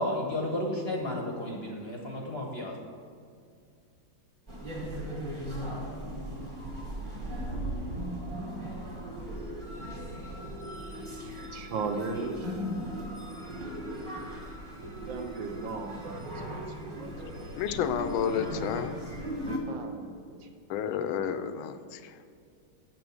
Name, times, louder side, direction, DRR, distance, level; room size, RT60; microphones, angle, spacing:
voice 1, 0.0-2.7, left 1 dB, 45° left, 0 dB, 0.8 m, -32 dB
sound 1, 4.5-19.6, equal, 20° right, 1.1 m, -37 dB
voice 2, 11.5-12.7 15.0-17.1 19.5-20.5, right 4 dB, 70° right, 4 dB, 1.5 m, -37 dB
voice 3, 17.5-19.0 20.7-22.1, left 8 dB, 80° left, 10 dB, 1.4 m, -31 dB
7.7 x 6.1 x 6.3 m, 2.3 s
omnidirectional pair, 2.2 m